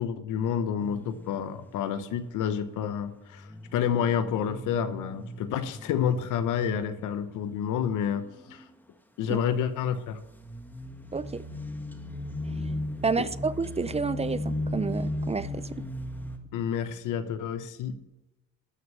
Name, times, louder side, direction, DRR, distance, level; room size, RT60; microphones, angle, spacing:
voice 1, 0.0-8.6 9.2-10.2 13.2-13.3 16.5-18.0, left 8 dB, 90° left, 1.1 m, -29 dB
sound 1, 0.8-1.7 3.2-7.8 8.1-8.6 10.1-16.4, left 1 dB, 5° left, 1.8 m, -37 dB
voice 2, 11.1-11.4 13.0-15.8, right 4 dB, 20° right, 0.4 m, -30 dB
13.0 x 6.5 x 6.3 m
cardioid pair, 90°, 30 cm